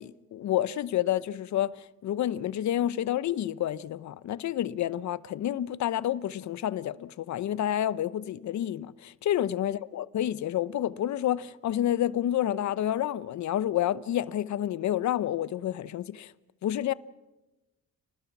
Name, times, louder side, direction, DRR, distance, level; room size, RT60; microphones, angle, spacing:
voice 1, 0.0-1.7 2.0-16.3 16.6-16.9, left 12 dB, 65° left, 0.9 m, -29 dB
29.5 x 19.5 x 6.0 m
cardioid pair, 90°, 30 cm